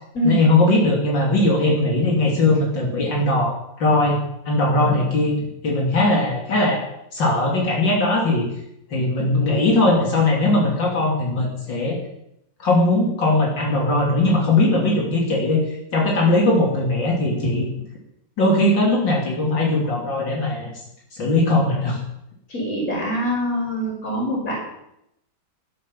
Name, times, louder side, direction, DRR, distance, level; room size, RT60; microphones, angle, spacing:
voice 1, 0.2-3.5 3.8-4.2 4.5-5.4 5.6-6.8 7.1-8.5 8.9-12.0 12.6-17.7 18.4-20.7 21.1-22.0, left 2 dB, 80° left, -2 dB, 3.5 m, -19 dB
voice 2, 22.5-24.6, equal, 50° left, -2 dB, 5.6 m, -24 dB
12.5 x 11.5 x 7.1 m, 0.79 s
omnidirectional pair, 2.0 m